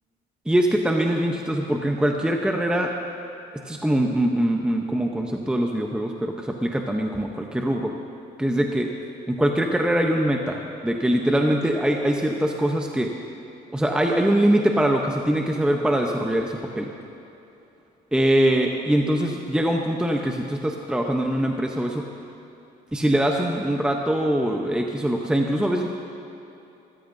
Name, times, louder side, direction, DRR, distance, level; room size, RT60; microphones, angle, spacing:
voice 1, 0.5-2.9 3.7-7.9 8.4-8.9 9.3-13.1 13.7-16.9 18.1-22.0 22.9-25.9, right 1 dB, 5° right, 2 dB, 0.8 m, -23 dB
22.0 x 14.5 x 2.7 m, 2.9 s
cardioid pair, 110°, 17 cm